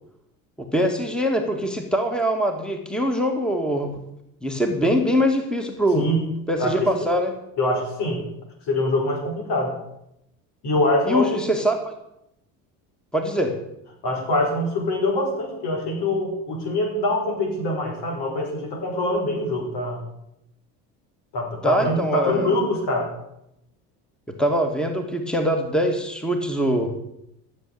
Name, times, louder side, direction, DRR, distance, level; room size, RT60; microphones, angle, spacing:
voice 1, 0.6-4.0 4.4-6.1 6.5-7.3 11.1-11.9 13.1-13.6 21.6-22.6 24.4-26.9, equal, ahead, 4 dB, 2.1 m, -23 dB
voice 2, 5.9-6.3 6.6-7.1 7.6-8.2 8.7-9.7 10.6-11.4 14.0-20.0 21.3-23.1, left 1 dB, 65° left, 2 dB, 5.3 m, -24 dB
14.0 x 7.5 x 8.5 m, 0.81 s
supercardioid pair, 80°, 43 cm